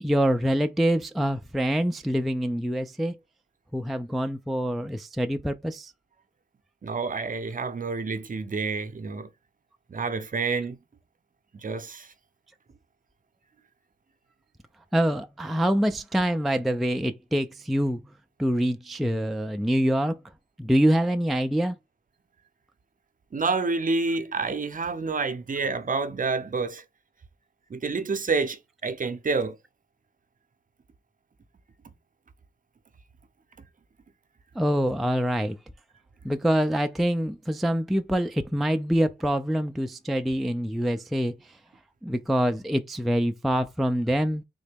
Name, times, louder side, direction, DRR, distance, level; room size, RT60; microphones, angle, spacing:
voice 1, 0.0-3.2 3.7-5.9 14.9-18.0 18.4-20.2 20.6-21.8 34.6-35.5 36.2-41.5 42.0-44.4, equal, ahead, 0.3 m, -25 dB
voice 2, 6.8-9.3 9.9-10.8 11.5-12.1 23.3-26.8 27.7-29.6, right 4 dB, 40° right, 0.6 m, -28 dB
3.7 x 2.1 x 3.4 m
cardioid pair, 50°, 21 cm